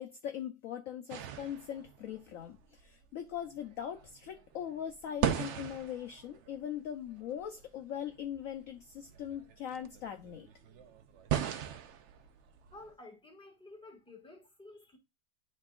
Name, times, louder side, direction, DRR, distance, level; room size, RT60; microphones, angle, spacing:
voice 1, 0.0-10.5, left 9 dB, 65° left, 0.9 m, -41 dB
sound 1, 1.1-12.9, right 9 dB, 90° right, 0.6 m, -40 dB
voice 2, 12.7-15.0, left 2 dB, 5° left, 1.5 m, -52 dB
10.5 x 3.8 x 2.4 m
omnidirectional pair, 1.9 m